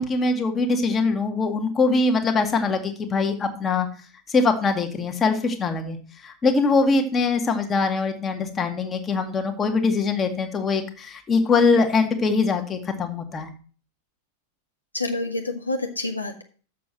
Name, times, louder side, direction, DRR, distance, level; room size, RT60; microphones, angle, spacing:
voice 1, 0.0-3.9 4.3-13.5, left 4 dB, 20° left, 4 dB, 1.4 m, -22 dB
voice 2, 14.9-16.4, left 2 dB, 85° left, 4 dB, 1.3 m, -28 dB
6.9 x 6.2 x 7.5 m, 0.40 s
figure-of-eight pair, 90°, 0 cm